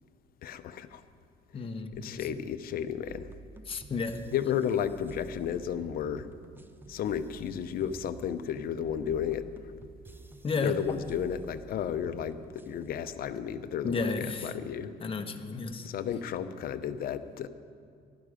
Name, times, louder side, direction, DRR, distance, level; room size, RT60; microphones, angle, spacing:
voice 1, 0.4-1.0 1.5-1.7 2.0-3.3 4.3-6.3 6.9-9.4 10.6-14.1 14.4-14.9 15.8-17.5, left 9 dB, 60° left, 11 dB, 0.8 m, -33 dB
voice 2, 1.5-2.3 3.7-4.2 10.4-10.8 13.8-14.5 15.0-15.9, left 4 dB, 30° left, 6 dB, 1.2 m, -32 dB
sound 1, 3.0-13.0, right 3 dB, 10° right, 0.7 m, -50 dB
17.5 x 12.5 x 5.1 m, 2.4 s
cardioid pair, 110°, 17 cm